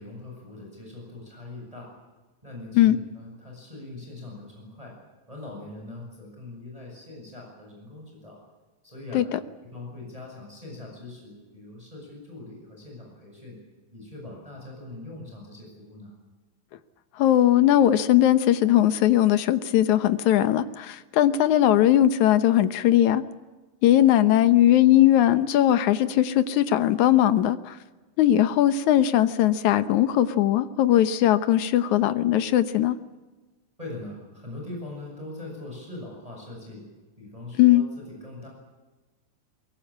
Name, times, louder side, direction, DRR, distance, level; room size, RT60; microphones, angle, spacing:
voice 1, 0.0-1.9 2.4-4.9 5.3-8.4 8.8-9.2 9.6-13.6 13.9-16.1 33.8-36.9 37.2-38.5, left 2 dB, 10° right, -1 dB, 7.2 m, -41 dB
voice 2, 17.2-23.2 23.8-27.8 28.2-33.0 37.6-37.8, left 12 dB, 70° left, 12 dB, 2.0 m, -19 dB
22.5 x 22.5 x 8.7 m, 1.2 s
omnidirectional pair, 4.1 m